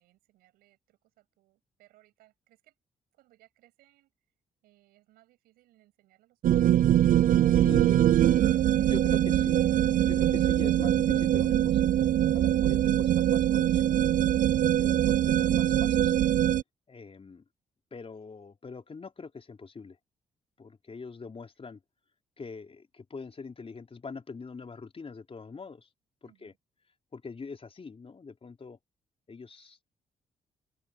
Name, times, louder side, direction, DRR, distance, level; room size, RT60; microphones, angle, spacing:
voice 1, 0.0-2.7 3.1-4.1 4.6-6.9 7.5-8.9 13.1-13.3 26.2-26.6, right 17 dB, 85° right, 7.4 m, -65 dB
sound 1, 6.4-16.6, right 11 dB, 65° right, 0.5 m, -23 dB
voice 2, 7.5-8.1 8.9-9.6 10.0-12.0 12.3-14.5 14.8-16.1 16.9-17.4 17.9-20.0 20.6-21.8 22.4-25.9 26.2-26.5 27.1-28.8 29.3-30.0, left 4 dB, 40° left, 4.7 m, -43 dB
open air
supercardioid pair, 55°, 15 cm